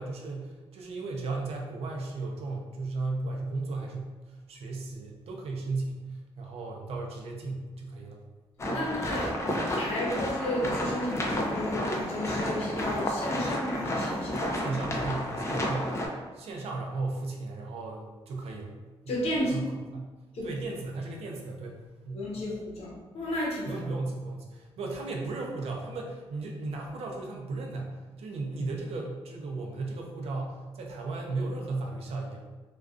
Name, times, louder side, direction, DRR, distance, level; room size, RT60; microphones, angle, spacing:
voice 1, 0.0-8.2 8.7-8.9 14.5-16.0 16.3-18.7 19.0-20.1 20.4-22.3 23.6-32.4, right 3 dB, 80° right, 1 dB, 0.4 m, -35 dB
sound 1, 8.6-16.1, left 1 dB, 30° left, 0.4 m, -31 dB
voice 2, 8.7-14.5 19.1-19.5 20.3-20.5 22.1-23.8, left 1 dB, 80° left, -4 dB, 0.7 m, -33 dB
2.4 x 2.2 x 2.4 m, 1.2 s
wide cardioid pair, 130°, 10 cm